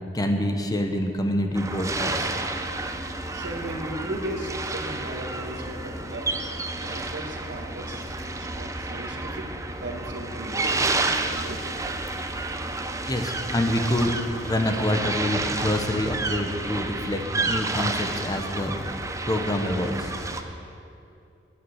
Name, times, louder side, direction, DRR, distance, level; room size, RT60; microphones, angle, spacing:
voice 1, 0.1-2.2 13.1-14.1 14.4-17.2 17.5-18.8 19.2-20.1, left 1 dB, 20° left, 4 dB, 0.9 m, -26 dB
sound 1, 1.5-20.4, right 2 dB, 15° right, 0.6 m, -30 dB
voice 2, 3.3-6.3 6.8-8.1 8.4-9.5 9.8-11.7, right 1 dB, 90° right, 1 dB, 1.7 m, -36 dB
9.5 x 9.1 x 7.9 m, 2.6 s
head